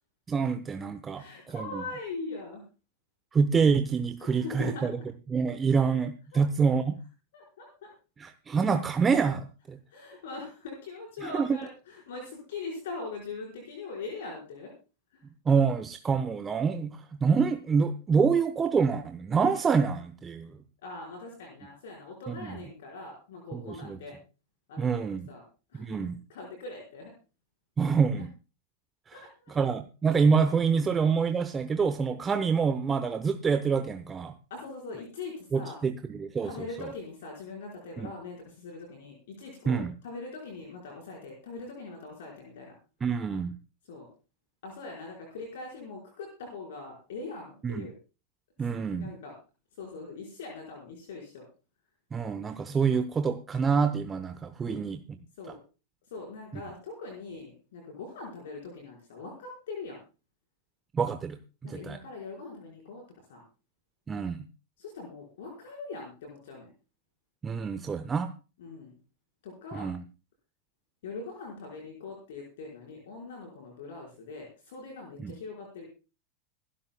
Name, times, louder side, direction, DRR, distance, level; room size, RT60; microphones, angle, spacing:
voice 1, 0.3-1.8 3.3-4.9 5.3-7.0 8.2-9.8 11.2-11.6 15.5-20.5 22.3-22.6 23.5-24.0 24.8-25.3 25.7-26.2 27.8-28.3 29.1-29.2 29.5-34.3 35.5-36.5 38.0-38.1 39.7-39.9 43.0-43.5 47.6-47.9 48.6-49.1 52.1-55.2 60.9-62.0 64.1-64.5 67.4-68.3 69.7-70.0 75.2-75.3, right 5 dB, 20° right, 9 dB, 0.8 m, -27 dB
voice 2, 1.1-2.6 4.2-5.0 5.7-5.8 6.6-6.7 7.3-7.9 9.9-14.7 20.8-24.2 24.7-25.4 25.7-27.1 29.1-29.6 34.5-35.8 36.4-42.7 43.8-44.1 44.6-47.9 48.9-49.3 49.8-51.5 54.7-55.0 55.4-55.6 56.1-60.0 61.6-63.0 63.3-63.4 64.8-66.7 68.6-68.9 69.4-69.9 71.0-75.9, left 3 dB, 55° left, -1 dB, 4.8 m, -42 dB
25.5 x 13.0 x 2.3 m, 0.33 s
figure-of-eight pair, 90°, 0 cm